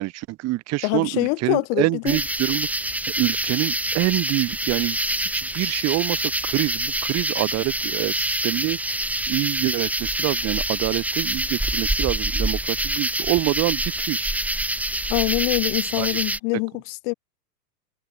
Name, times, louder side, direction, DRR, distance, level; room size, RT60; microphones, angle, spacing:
voice 1, 0.0-2.7 3.2-8.8 9.3-14.3 16.0-16.1, right 18 dB, 35° right, 1.0 m, -26 dB
voice 2, 0.8-2.2 15.1-17.1, left 33 dB, 55° left, 3.6 m, -24 dB
sound 1, 2.1-16.4, right 1 dB, 5° right, 2.0 m, -26 dB
hypercardioid pair, 105°, 47 cm